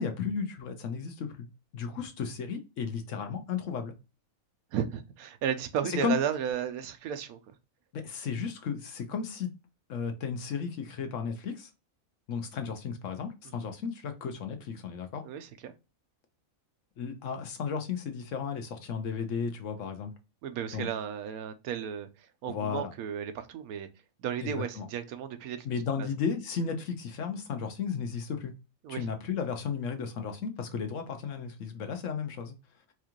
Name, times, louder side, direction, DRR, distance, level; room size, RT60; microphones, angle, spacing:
voice 1, 0.0-1.5 1.7-3.9 5.8-6.1 7.9-9.5 9.9-11.7 12.3-15.2 17.0-20.1 20.7-20.9 22.5-22.9 24.4-24.9 25.6-28.5 28.9-32.5, left 6 dB, 65° left, 1.1 m, -34 dB
voice 2, 4.7-7.4 13.6-13.7 15.2-15.7 20.4-23.9 24.2-25.7 26.0-26.1 28.8-29.1, right 8 dB, 90° right, 1.1 m, -34 dB
4.5 x 2.4 x 2.9 m
omnidirectional pair, 1.5 m